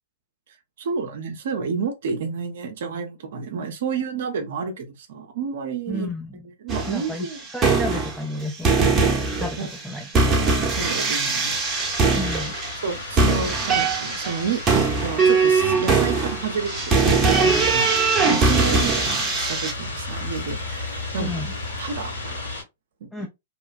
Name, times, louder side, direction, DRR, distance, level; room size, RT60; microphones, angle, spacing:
voice 1, 0.8-6.1 6.6-7.4 9.6-9.7 10.8-11.6 12.8-17.9 18.2-21.4 21.8-22.1 23.0-23.3, right 5 dB, 60° right, 0.5 m, -30 dB
voice 2, 5.9-6.5 6.9-9.1 9.4-10.3 12.1-12.5 13.2-13.3 21.2-21.5 23.1-23.3, left 2 dB, 5° left, 0.5 m, -32 dB
sound 1, 6.7-7.1 7.5-8.4 8.6-19.7, right 4 dB, 20° right, 0.8 m, -21 dB
sound 2, 11.5-22.6, left 2 dB, 80° left, 1.6 m, -33 dB
2.9 x 2.1 x 2.5 m
figure-of-eight pair, 105°, 0 cm